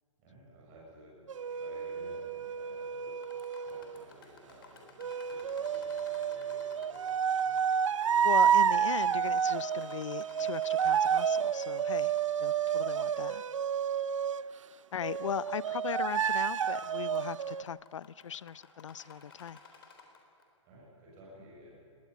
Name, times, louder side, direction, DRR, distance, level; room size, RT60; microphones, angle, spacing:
voice 1, 0.2-3.1 3.6-7.7 20.6-21.8, right 1 dB, 20° right, -4 dB, 6.4 m, -55 dB
sound 1, 1.3-4.0 5.0-14.5 15.0-17.6, right 8 dB, 75° right, 0.7 m, -30 dB
sound 2, 3.2-12.2 12.5-12.6 13.3-13.4 14.0-14.1 15.3-15.5 15.9-16.1 16.4-20.4, left 5 dB, 45° left, 3.7 m, -55 dB
voice 2, 8.2-12.1 12.4-13.4 14.9-19.6, left 8 dB, 70° left, 20 dB, 0.6 m, -38 dB
20.5 x 18.5 x 9.6 m, 2.7 s
hypercardioid pair, 180°, 16 cm